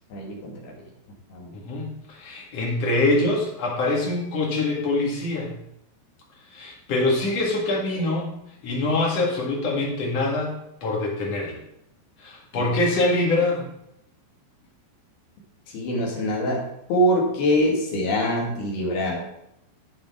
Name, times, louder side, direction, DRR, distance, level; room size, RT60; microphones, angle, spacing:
voice 1, 0.1-0.7 1.3-1.5 12.5-12.7 15.7-16.6 16.9-19.2, equal, 65° left, -2 dB, 4.0 m, -24 dB
voice 2, 1.5-5.6 6.5-8.4 8.6-10.5 10.8-11.6 12.2-13.7, left 2 dB, 45° left, -2 dB, 2.5 m, -24 dB
15.0 x 5.5 x 3.7 m, 0.80 s
omnidirectional pair, 5.1 m